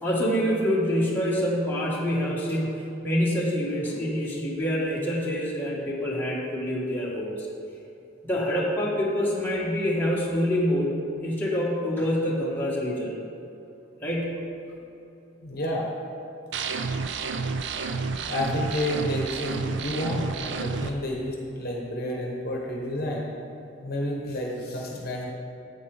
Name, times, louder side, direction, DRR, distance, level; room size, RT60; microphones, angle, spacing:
voice 1, 0.0-2.7 3.0-7.5 8.2-10.9 11.2-13.1 14.0-14.4, equal, 10° left, -6 dB, 1.4 m, -26 dB
voice 2, 15.4-15.9 18.3-23.3 23.8-25.3, left 1 dB, 50° left, -2 dB, 1.0 m, -30 dB
sound 1, 16.5-20.9, right 4 dB, 60° right, 0.4 m, -30 dB
9.3 x 8.0 x 3.5 m, 2.8 s
head